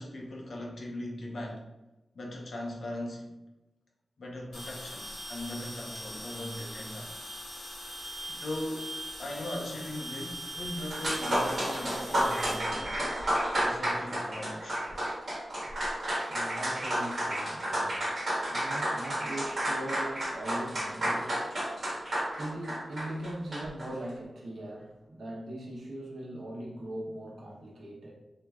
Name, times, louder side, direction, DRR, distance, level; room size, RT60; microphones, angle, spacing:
voice 1, 0.0-1.7 2.1-3.4 4.2-7.1 8.3-8.9 9.2-12.9 13.5-14.8, left 1 dB, 60° left, -1 dB, 0.6 m, -39 dB
sound 1, 4.5-13.8, equal, 85° left, 1.1 m, -41 dB
sound 2, 10.6-10.7 10.9-23.9, right 1 dB, 45° right, 1.3 m, -31 dB
voice 2, 15.6-21.5 21.8-28.1, right 1 dB, 70° right, -3 dB, 0.8 m, -40 dB
3.3 x 2.8 x 2.3 m, 1.0 s
wide cardioid pair, 130°, 0 cm